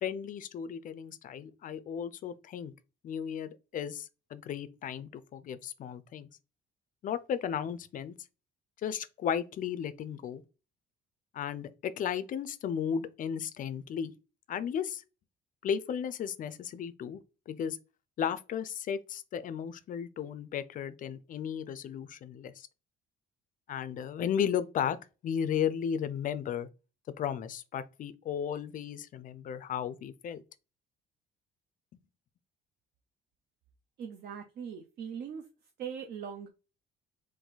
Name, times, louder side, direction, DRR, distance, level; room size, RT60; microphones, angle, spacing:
voice 1, 0.0-2.7 3.0-6.3 7.0-8.1 8.8-10.4 11.3-14.1 14.5-15.0 15.6-17.2 17.5-17.8 18.2-22.7 23.7-25.0 25.2-26.7 27.2-30.4, left 8 dB, 40° left, 0.4 m, -34 dB
voice 2, 34.0-35.4 35.8-36.5, right 7 dB, 55° right, 0.6 m, -40 dB
3.9 x 2.6 x 3.9 m
cardioid pair, 160°, 20 cm